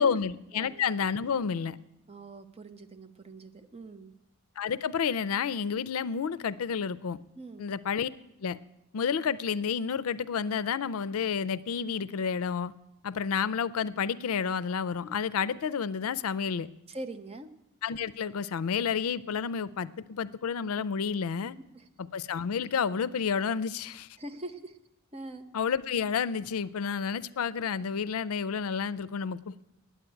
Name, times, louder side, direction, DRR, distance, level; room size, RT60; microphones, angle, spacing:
voice 1, 0.0-1.8 4.6-7.2 7.6-8.1 8.4-8.6 8.9-12.7 13.0-16.7 17.8-21.6 22.0-24.1 25.5-29.6, left 6 dB, 80° left, 17 dB, 0.4 m, -30 dB
voice 2, 2.1-4.1 7.4-7.7 16.9-17.5 21.7-21.9 24.2-24.8 25.1-25.5, right 2 dB, 30° right, 7 dB, 0.8 m, -43 dB
9.1 x 9.0 x 9.1 m, 0.86 s
head